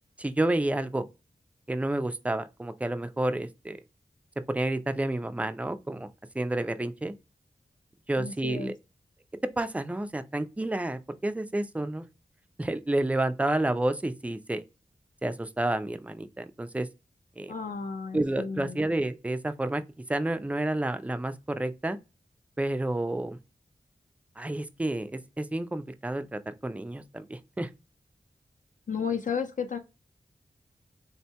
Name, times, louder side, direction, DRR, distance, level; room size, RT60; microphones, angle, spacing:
voice 1, 0.2-1.0 1.7-3.8 4.5-6.1 6.3-7.1 8.1-8.7 9.6-12.1 12.6-14.6 15.2-16.9 17.4-17.5 18.1-19.8 20.1-22.0 22.6-23.4 24.4-27.7, right 1 dB, 10° right, 0.3 m, -30 dB
voice 2, 8.2-8.7 17.5-18.8 28.9-29.8, left 6 dB, 55° left, 0.5 m, -33 dB
3.6 x 2.1 x 2.8 m
wide cardioid pair, 70°, 16 cm